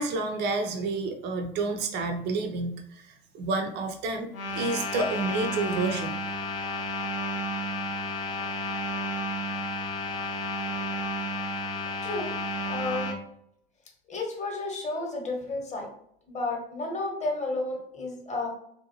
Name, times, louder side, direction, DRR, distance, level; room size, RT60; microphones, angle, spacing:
voice 1, 0.0-6.2, right 3 dB, 35° right, 5 dB, 0.5 m, -30 dB
sound 1, 4.3-13.2, left 1 dB, 80° left, 0.5 m, -32 dB
voice 2, 12.0-12.3 12.7-13.2 14.1-15.9 16.3-18.5, left 2 dB, 25° left, 0 dB, 0.9 m, -32 dB
2.7 x 2.1 x 2.8 m, 0.71 s
figure-of-eight pair, 65°, 29 cm